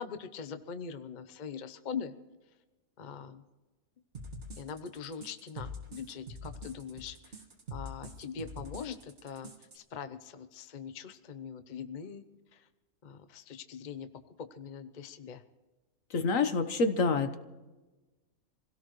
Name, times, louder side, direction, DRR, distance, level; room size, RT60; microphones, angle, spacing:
voice 1, 0.0-2.1 3.0-3.4 4.6-7.4 7.7-12.2 12.5-12.7 13.0-15.4, left 6 dB, 40° left, 10 dB, 0.8 m, -42 dB
sound 1, 4.1-9.8, left 1 dB, 55° right, 2.1 m, -44 dB
voice 2, 16.1-17.4, left 3 dB, 70° left, 8 dB, 1.5 m, -27 dB
26.5 x 17.0 x 3.1 m, 1.1 s
omnidirectional pair, 1.5 m